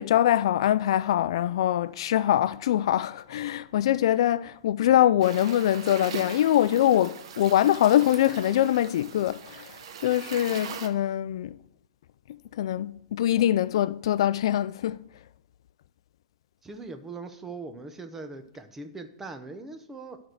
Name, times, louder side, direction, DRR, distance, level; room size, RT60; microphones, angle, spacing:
voice 1, 0.0-11.6 12.5-15.0, left 12 dB, 65° left, 0.3 m, -23 dB
sound 1, 5.2-10.9, right 7 dB, 70° right, 1.0 m, -41 dB
voice 2, 16.6-20.2, right 3 dB, 10° right, 0.7 m, -40 dB
12.0 x 4.5 x 6.3 m
supercardioid pair, 165°, 3 cm